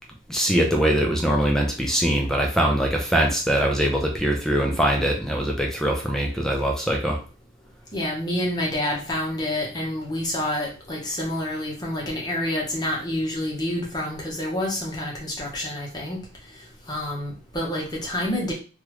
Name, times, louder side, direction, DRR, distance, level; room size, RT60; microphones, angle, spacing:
voice 1, 0.3-7.2, right 1 dB, ahead, 0 dB, 0.4 m, -22 dB
voice 2, 7.9-16.2 16.9-18.5, left 1 dB, 20° left, -2 dB, 0.9 m, -28 dB
3.3 x 2.4 x 3.1 m, 0.36 s
head